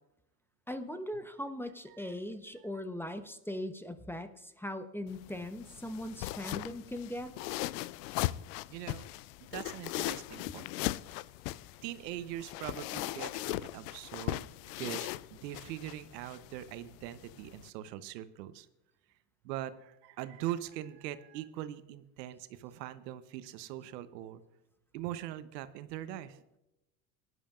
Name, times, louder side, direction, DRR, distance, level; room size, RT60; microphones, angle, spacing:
voice 1, 0.7-7.3, left 1 dB, 5° left, 9 dB, 0.9 m, -40 dB
sound 1, 5.1-17.7, left 17 dB, 75° left, 0.6 m, -39 dB
voice 2, 8.7-9.1 9.4-10.7 11.8-14.5 14.8-18.7 19.4-24.4 24.9-26.4, right 13 dB, 75° right, 12 dB, 1.0 m, -42 dB
19.0 x 11.0 x 2.5 m, 0.91 s
hypercardioid pair, 85°, 49 cm